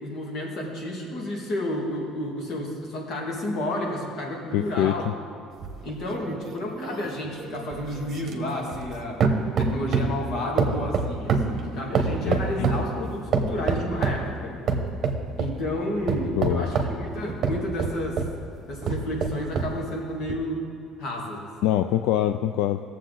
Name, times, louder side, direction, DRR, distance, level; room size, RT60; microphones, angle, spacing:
voice 1, 0.0-5.1 5.8-9.2 9.6-14.6 15.4-18.2 18.7-20.6 21.0-21.5, left 1 dB, 50° left, -1 dB, 2.2 m, -31 dB
voice 2, 4.5-5.1 12.2-12.7 16.4-16.7 21.6-22.8, left 12 dB, 85° left, 9 dB, 0.3 m, -24 dB
sound 1, 5.6-8.9 9.2-10.2 10.6-12.9 13.3-14.3 14.7-15.6 16.1-18.4 18.8-19.8 20.3-20.4, right 5 dB, 40° right, 1.1 m, -26 dB
18.5 x 7.4 x 3.9 m, 2.5 s
cardioid pair, 140°, 0 cm